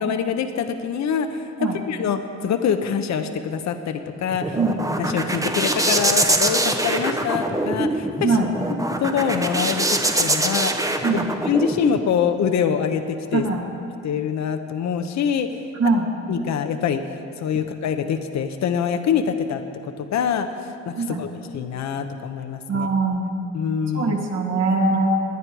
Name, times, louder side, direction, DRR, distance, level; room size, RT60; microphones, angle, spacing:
voice 1, 0.0-1.5 1.7-4.6 5.0-8.3 9.0-13.4 14.0-15.6 16.3-17.0 17.4-22.9 23.5-24.1, left 7 dB, 65° left, 8 dB, 1.0 m, -25 dB
sound 1, 4.1-12.0, right 1 dB, 10° right, 0.9 m, -23 dB
voice 2, 13.3-13.6 15.8-16.0 21.0-21.2 22.7-23.3 23.9-25.2, right 3 dB, 55° right, 1 dB, 2.2 m, -21 dB
20.5 x 9.5 x 4.7 m, 2.6 s
cardioid pair, 90°, 30 cm